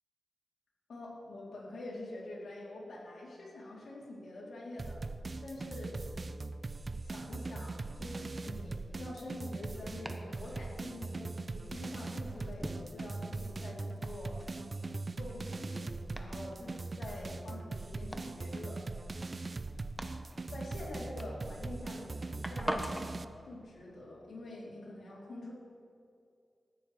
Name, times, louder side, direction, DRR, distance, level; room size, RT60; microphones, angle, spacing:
voice 1, 0.9-5.0 5.4-6.0 7.0-14.5 15.2-15.9 16.2-19.4 20.5-25.5, left 1 dB, 75° left, -5 dB, 2.9 m, -46 dB
sound 1, 4.8-23.2, right 3 dB, 45° right, 0.4 m, -40 dB
Domestic sounds home sounds, 7.6-23.2, equal, 5° right, 0.9 m, -47 dB
14.0 x 9.3 x 3.2 m, 2.4 s
cardioid pair, 55°, 0 cm